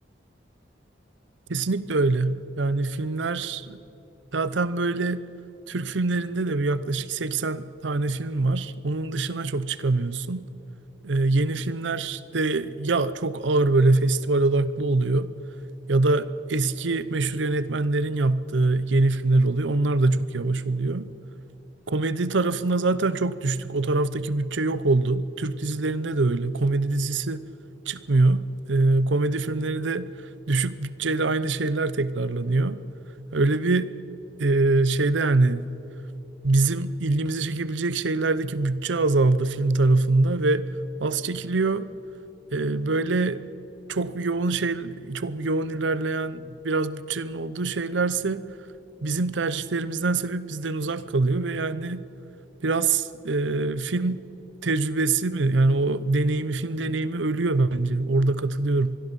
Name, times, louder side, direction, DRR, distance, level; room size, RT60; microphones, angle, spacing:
voice 1, 1.5-3.8 4.3-5.3 5.7-10.5 11.0-15.3 15.9-21.1 21.9-27.4 27.9-30.1 30.5-32.8 33.3-33.9 34.4-35.8 36.4-40.6 41.0-41.9 42.5-43.4 43.9-48.4 49.0-52.1 52.6-54.2 54.6-59.0, right 3 dB, 80° right, 16 dB, 0.7 m, -24 dB
25.5 x 21.0 x 5.4 m, 3.0 s
head